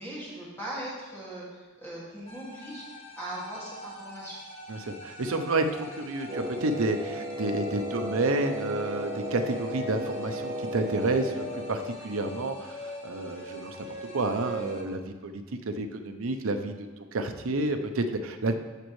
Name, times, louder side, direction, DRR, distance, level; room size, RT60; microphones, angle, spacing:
voice 1, 0.0-4.4, right 1 dB, 10° left, -7 dB, 2.1 m, -39 dB
sound 1, 2.3-14.8, left 1 dB, 30° left, 0.9 m, -42 dB
voice 2, 4.7-13.9 14.1-18.6, right 2 dB, 75° right, 6 dB, 0.7 m, -30 dB
Wind instrument woodwind instrument, 6.3-12.0, equal, 35° right, 0.3 m, -36 dB
13.5 x 5.2 x 3.2 m, 1.3 s
head